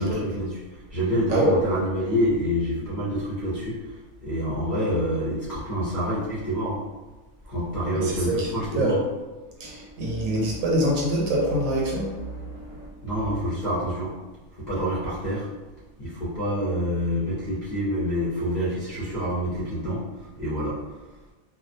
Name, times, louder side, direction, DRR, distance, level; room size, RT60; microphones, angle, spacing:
voice 1, 0.0-6.8 7.5-9.0 13.0-14.1 14.5-15.5 16.0-20.0 20.4-20.7, equal, 40° left, -9 dB, 0.6 m, -27 dB
voice 2, 7.9-8.5 8.8-9.0 9.6-12.9, right 1 dB, 75° right, -2 dB, 1.0 m, -25 dB
2.4 x 2.2 x 2.6 m, 1.2 s
omnidirectional pair, 1.4 m